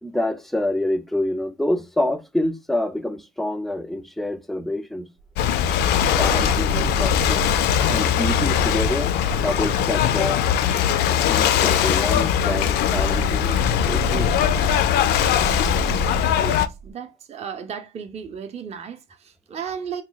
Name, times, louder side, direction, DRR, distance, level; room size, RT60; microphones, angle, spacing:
voice 1, 0.0-5.1 6.1-7.5 7.9-9.1 9.4-10.5 11.3-14.3, left 1 dB, ahead, 0.4 m, -27 dB
sound 1, 5.2-10.8 11.6-16.9, right 5 dB, 70° right, 0.8 m, -33 dB
Ocean / Boat Water vehicle, 5.4-16.7, left 10 dB, 75° left, 0.4 m, -21 dB
voice 2, 16.3-20.0, right 7 dB, 40° right, 0.6 m, -35 dB
2.9 x 2.2 x 3.8 m
cardioid pair, 110°, 17 cm